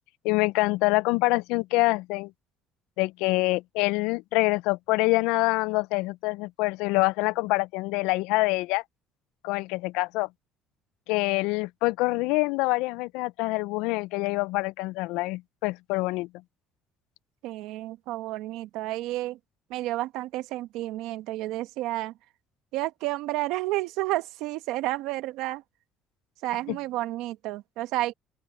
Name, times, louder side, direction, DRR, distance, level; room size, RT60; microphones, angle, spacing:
voice 1, 0.2-2.3 3.0-8.8 9.4-10.3 11.1-16.3 26.7-26.8, left 23 dB, 90° left, 0.4 m, -25 dB
voice 2, 17.4-19.4 19.7-22.1 22.7-25.6 26.4-28.1, right 17 dB, 80° right, 1.2 m, -31 dB
open air
cardioid pair, 105°, 0 cm